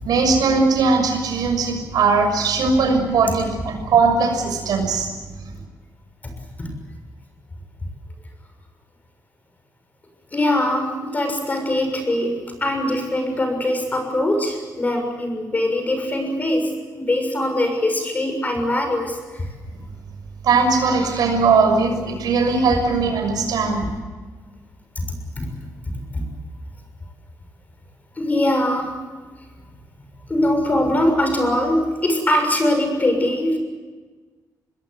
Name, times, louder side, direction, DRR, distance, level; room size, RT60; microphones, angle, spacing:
voice 1, 0.0-5.1 20.4-23.9, right 4 dB, 80° right, 5 dB, 6.4 m, -19 dB
voice 2, 10.3-16.7 17.0-19.5 25.4-25.5 26.1-26.2 28.2-28.9 30.3-33.6, left 1 dB, 25° left, 5 dB, 6.7 m, -22 dB
26.0 x 21.0 x 8.2 m, 1.4 s
cardioid pair, 130°, 7 cm